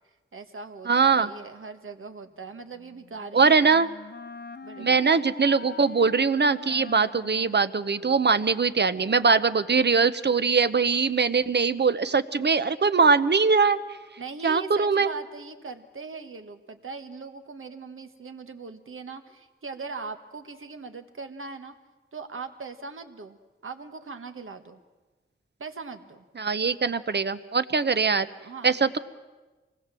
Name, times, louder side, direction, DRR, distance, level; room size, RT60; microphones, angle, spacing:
voice 1, 0.3-3.5 4.6-5.5 14.2-21.7 22.1-24.8 25.6-26.3 28.4-28.8, right 4 dB, 80° right, 7 dB, 1.6 m, -40 dB
voice 2, 0.9-1.3 3.3-3.9 4.8-13.8 14.4-15.1 26.4-28.3 28.6-29.0, right 5 dB, 55° right, 12 dB, 0.9 m, -22 dB
Wind instrument woodwind instrument, 2.7-8.5, left 4 dB, 55° left, 0.9 m, -44 dB
25.5 x 19.5 x 7.6 m, 1.2 s
wide cardioid pair, 70°, 21 cm